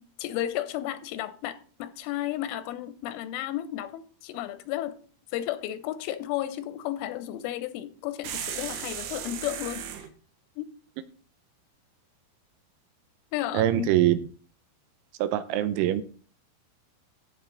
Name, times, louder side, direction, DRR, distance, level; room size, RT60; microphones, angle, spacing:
voice 1, 0.0-5.0 5.3-9.9 10.6-10.7 13.3-14.0, left 13 dB, 90° left, 3.2 m, -33 dB
sound 1, 8.2-10.1, right 9 dB, 70° right, 2.8 m, -36 dB
voice 2, 13.5-14.2 15.2-16.0, right 13 dB, 90° right, 3.2 m, -23 dB
15.5 x 5.4 x 3.9 m
omnidirectional pair, 5.5 m